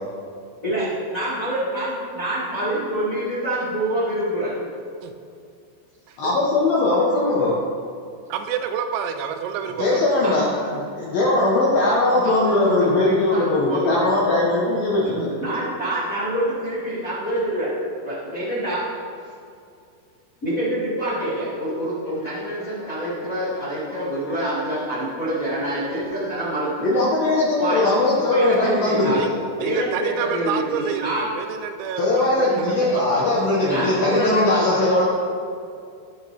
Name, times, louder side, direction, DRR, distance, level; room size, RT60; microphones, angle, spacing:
voice 1, 0.6-4.6 10.2-10.3 10.6-10.8 12.2-14.0 15.0-17.7 18.0-18.8 20.4-27.0 27.6-27.8 28.3-29.2 29.6-31.3 33.6-35.1, right 1 dB, 35° left, -10 dB, 1.3 m, -26 dB
voice 2, 6.2-7.6 9.8-15.3 22.8-23.8 24.4-24.5 26.8-29.3 32.0-35.1, left 2 dB, 75° left, -5 dB, 2.2 m, -20 dB
voice 3, 8.3-10.0 29.1-29.3 29.6-33.0, right 7 dB, 90° right, 7 dB, 3.4 m, -28 dB
19.0 x 6.4 x 3.4 m, 2.4 s
omnidirectional pair, 5.8 m